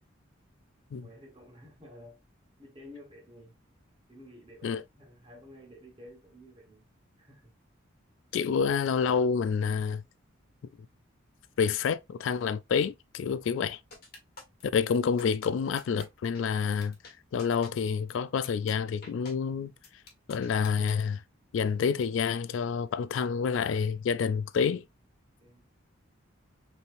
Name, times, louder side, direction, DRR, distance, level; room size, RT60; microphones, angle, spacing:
voice 1, 1.0-2.2 2.6-3.6 4.1-6.9 7.2-7.5 25.4-25.7, left 1 dB, 25° right, 1.5 m, -51 dB
voice 2, 8.3-10.0 11.6-13.8 14.7-19.7 20.3-21.2 21.5-24.8, left 6 dB, 70° left, 0.3 m, -28 dB
sound 1, 13.9-14.6 15.2-15.5 15.8-16.0 16.3-16.4 16.8-17.1 17.4-17.7 18.1-18.2 18.4-18.7 19.0-19.3 19.8-21.0, left 2 dB, 45° left, 1.6 m, -47 dB
5.4 x 3.2 x 2.5 m
head